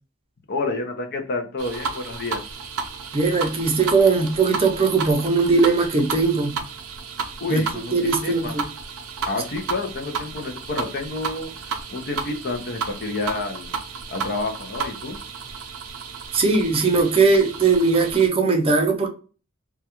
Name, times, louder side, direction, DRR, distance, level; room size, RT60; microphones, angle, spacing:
voice 1, 0.5-2.4 7.4-8.6 9.3-13.8 14.1-15.2, left 3 dB, 50° left, 0.5 m, -29 dB
sound 1, 1.6-18.3, right 5 dB, 85° right, 0.5 m, -33 dB
voice 2, 3.1-6.6 7.5-7.6 7.9-8.7 16.3-19.1, right 4 dB, 25° right, 0.5 m, -19 dB
2.3 x 2.2 x 2.8 m
head